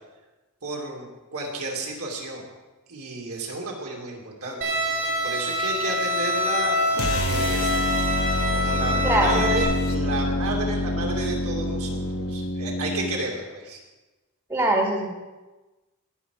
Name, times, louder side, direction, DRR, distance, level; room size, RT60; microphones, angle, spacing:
voice 1, 0.6-1.0 1.3-2.4 2.9-4.6 5.2-7.8 8.5-13.8, right 2 dB, 75° right, -1 dB, 2.8 m, -32 dB
Bowed string instrument, 4.6-9.6, equal, 55° right, 2.9 m, -26 dB
sound 1, 6.9-13.2, left 1 dB, 70° left, 1.0 m, -26 dB
voice 2, 9.0-9.6 14.5-15.1, right 1 dB, 15° right, 0 dB, 1.7 m, -22 dB
17.5 x 6.5 x 5.0 m, 1.2 s
head